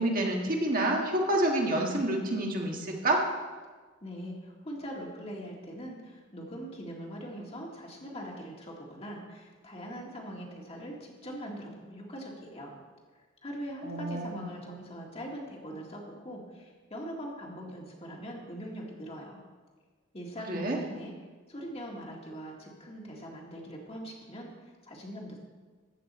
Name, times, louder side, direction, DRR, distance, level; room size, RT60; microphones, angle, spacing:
voice 1, 0.0-3.2 13.8-14.5 20.5-20.8, right 1 dB, 45° right, 0 dB, 1.5 m, -28 dB
voice 2, 4.0-12.8 13.4-19.4 20.1-21.1 21.5-25.4, equal, 30° left, -1 dB, 1.8 m, -42 dB
14.0 x 8.4 x 4.2 m, 1.4 s
head